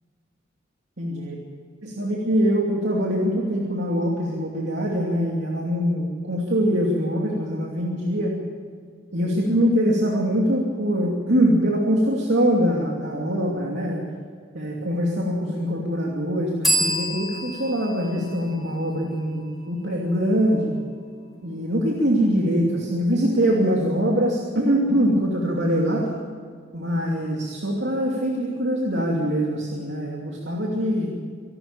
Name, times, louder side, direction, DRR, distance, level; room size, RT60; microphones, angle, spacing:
voice 1, 1.0-1.4 1.8-8.3 9.1-14.0 14.5-20.7 21.4-26.1 26.7-31.1, equal, 65° right, -1 dB, 2.7 m, -23 dB
sound 1, 16.6-20.2, equal, ahead, 4.6 m, -29 dB
25.5 x 12.5 x 8.8 m, 2.1 s
head